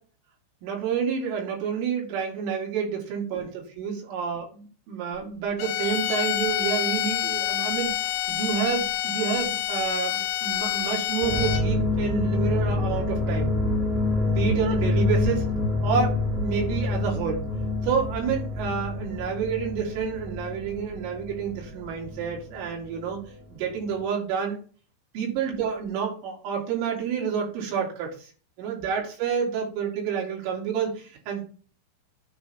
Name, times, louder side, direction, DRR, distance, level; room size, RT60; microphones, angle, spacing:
voice 1, 0.6-8.0 8.3-13.5 14.3-15.4 15.8-17.5 17.8-23.2 23.5-24.6 25.1-28.3 28.6-31.4, right 7 dB, 80° right, -1 dB, 5.1 m, -29 dB
sound 1, 5.6-11.8, left 13 dB, 85° left, 3.1 m, -27 dB
sound 2, 11.2-23.3 23.6-24.0, left 2 dB, 20° right, 1.1 m, -27 dB
9.3 x 3.3 x 6.0 m, 0.38 s
omnidirectional pair, 5.7 m